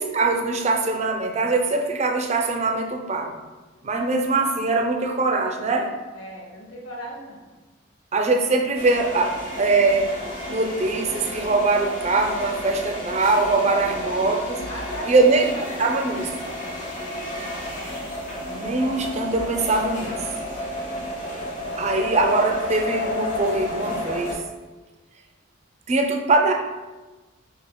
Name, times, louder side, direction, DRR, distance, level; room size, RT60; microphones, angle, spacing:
voice 1, 0.0-3.3 3.8-5.9 8.1-10.1 10.5-14.6 15.1-15.5 15.8-16.3 18.5-20.3 21.8-24.4 25.9-26.5, right 3 dB, 35° right, 2 dB, 0.4 m, -22 dB
voice 2, 6.1-7.4 13.6-14.2 14.7-16.2, equal, 75° left, -1 dB, 0.9 m, -37 dB
sound 1, 8.7-24.3, left 1 dB, 40° left, 0.9 m, -32 dB
4.6 x 3.4 x 2.2 m, 1.2 s
head